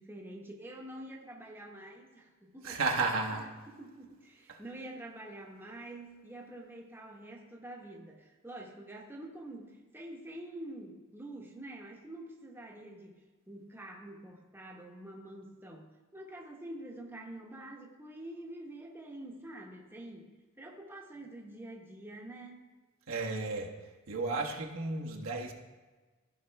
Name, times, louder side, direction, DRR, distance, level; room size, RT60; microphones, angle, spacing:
voice 1, 0.0-2.8 3.3-3.5 3.8-22.6, right 1 dB, 10° right, -1 dB, 1.1 m, -47 dB
voice 2, 2.6-3.5 4.5-4.6 23.1-23.7 24.1-25.5, right 3 dB, 75° right, 0 dB, 1.2 m, -33 dB
14.5 x 5.1 x 3.4 m, 1.3 s
head